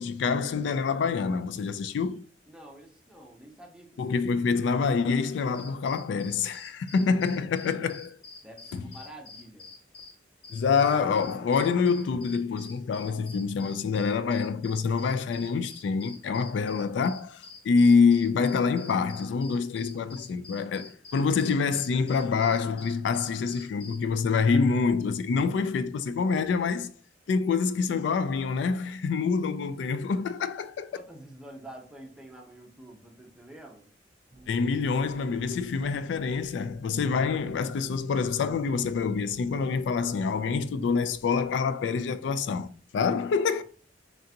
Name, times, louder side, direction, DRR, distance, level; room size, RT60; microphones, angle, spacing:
voice 1, 0.0-2.2 4.0-8.2 8.7-8.9 10.5-26.9 27.3-30.9 34.5-43.6, left 5 dB, 75° left, 0.3 m, -26 dB
voice 2, 2.5-4.1 8.4-9.7 30.9-33.9, right 1 dB, 5° right, 0.7 m, -48 dB
sound 1, 5.5-10.2 10.4-24.2, left 4 dB, 30° left, 0.6 m, -47 dB
sound 2, 34.3-41.5, right 2 dB, 40° right, 0.7 m, -51 dB
3.7 x 3.4 x 2.8 m
head